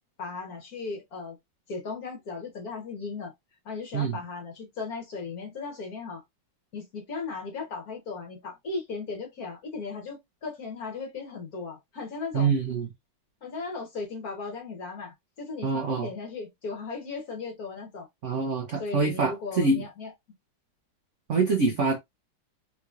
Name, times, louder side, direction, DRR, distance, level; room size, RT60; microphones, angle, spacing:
voice 1, 0.2-1.4 1.7-3.3 3.6-6.2 6.7-12.5 13.4-18.1 18.8-20.1, left 4 dB, 50° left, 1.4 m, -37 dB
voice 2, 12.3-12.9 15.6-16.1 18.2-19.8 21.3-22.0, right 4 dB, 70° right, 0.7 m, -25 dB
3.7 x 3.0 x 2.4 m
omnidirectional pair, 2.3 m